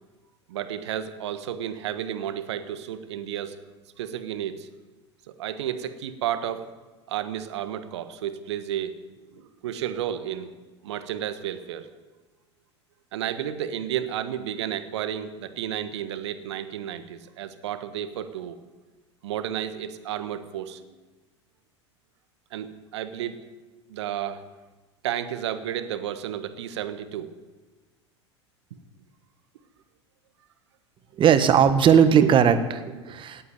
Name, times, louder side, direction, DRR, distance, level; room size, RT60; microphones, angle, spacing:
voice 1, 0.5-3.6 4.0-4.7 5.4-6.7 7.1-8.9 9.3-10.5 10.8-11.9 13.1-18.6 19.2-20.8 22.5-23.4 23.9-24.4 25.0-27.3 28.7-28.8 33.1-33.2, right 10 dB, 65° right, 11 dB, 1.3 m, -32 dB
voice 2, 31.2-33.4, right 8 dB, 35° right, 10 dB, 1.5 m, -18 dB
17.5 x 8.6 x 9.2 m, 1.3 s
figure-of-eight pair, 85°, 15 cm